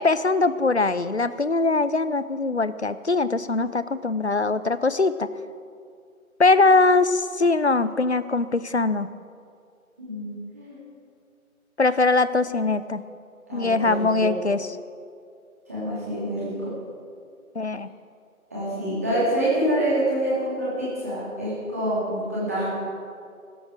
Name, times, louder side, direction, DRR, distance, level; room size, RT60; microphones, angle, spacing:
voice 1, 0.0-5.3 6.4-9.1 11.8-13.0 13.5-14.7 17.6-17.9, left 3 dB, 50° left, 14 dB, 0.6 m, -22 dB
voice 2, 10.0-10.8 13.5-14.4 15.7-16.7 18.5-22.7, right 1 dB, 10° right, -10 dB, 2.2 m, -26 dB
16.5 x 13.0 x 4.9 m, 2.3 s
figure-of-eight pair, 165°, 43 cm